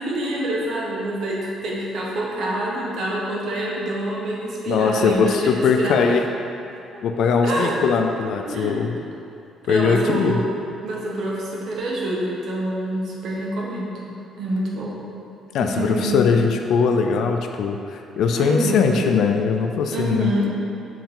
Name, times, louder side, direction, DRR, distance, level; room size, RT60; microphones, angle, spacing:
voice 1, 0.0-6.0 7.4-7.9 8.4-8.7 9.6-10.4 10.8-14.0 14.4-15.0 15.6-16.2 18.4-19.2 19.9-20.5, right 1 dB, 60° right, -4 dB, 1.3 m, -26 dB
voice 2, 4.7-6.2 7.0-9.0 9.7-10.4 15.5-20.5, left 5 dB, 65° left, 4 dB, 0.4 m, -20 dB
7.3 x 4.6 x 3.8 m, 2.6 s
cardioid pair, 160°, 0 cm